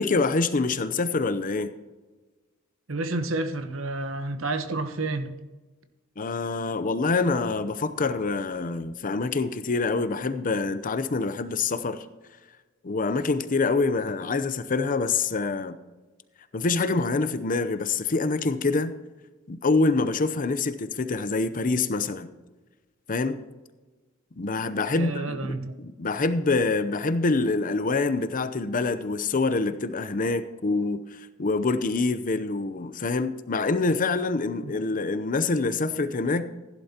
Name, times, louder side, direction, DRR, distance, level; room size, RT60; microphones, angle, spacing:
voice 1, 0.0-1.7 6.2-12.1 12.8-15.8 16.5-18.9 19.5-22.3 23.1-23.4 24.4-36.4, left 3 dB, 40° left, 0.7 m, -26 dB
voice 2, 2.9-5.3 24.9-25.8 34.6-34.7, right 2 dB, 75° right, 1.0 m, -30 dB
15.5 x 11.0 x 2.9 m
head